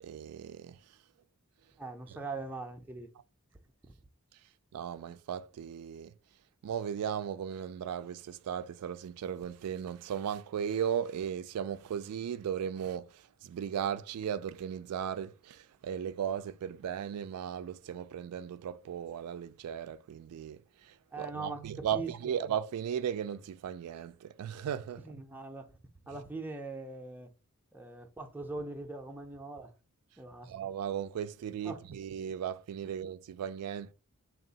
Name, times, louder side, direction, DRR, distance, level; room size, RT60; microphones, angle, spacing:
voice 1, 0.0-0.8 4.7-6.1 6.6-25.0 30.5-33.9, right 8 dB, 90° right, 0.3 m, -36 dB
voice 2, 1.8-3.1 21.1-22.1 25.1-25.8 26.1-27.3 27.7-29.7 30.2-30.5 31.6-31.8 32.8-32.9, right 3 dB, 10° right, 0.4 m, -41 dB
3.6 x 2.4 x 3.9 m
head